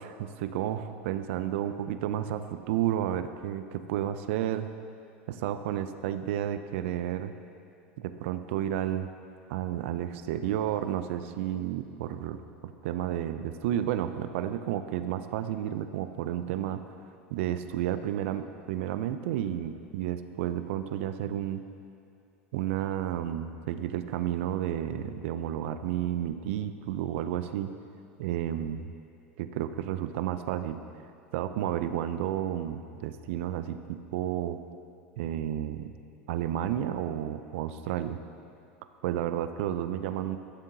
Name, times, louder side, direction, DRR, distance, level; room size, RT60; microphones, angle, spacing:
voice 1, 0.0-4.7 5.3-7.3 8.0-9.1 9.5-16.8 17.3-21.6 22.5-27.7 28.2-28.9 29.4-30.8 31.3-34.6 35.2-35.9 36.3-38.2 39.0-40.4, right 11 dB, 70° right, 10 dB, 0.4 m, -31 dB
12.5 x 7.2 x 2.8 m, 2.6 s
hypercardioid pair, 95°, 7 cm